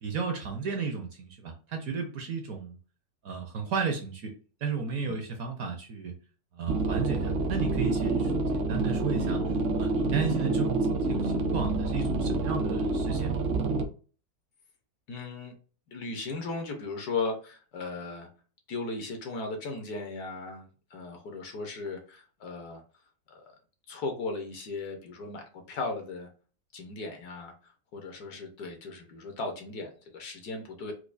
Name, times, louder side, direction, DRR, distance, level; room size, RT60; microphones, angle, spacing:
voice 1, 0.0-2.8 3.2-4.3 4.6-6.1 6.5-13.4, right 5 dB, 65° right, 3 dB, 1.0 m, -34 dB
sound 1, 6.7-13.8, right 3 dB, 85° right, 0.6 m, -28 dB
voice 2, 15.1-15.5 15.9-18.3 18.7-22.8 23.3-23.4 23.9-26.3 26.7-27.5 27.9-30.9, left 3 dB, 65° left, 3 dB, 1.2 m, -37 dB
4.6 x 2.3 x 2.4 m, 0.37 s
omnidirectional pair, 1.9 m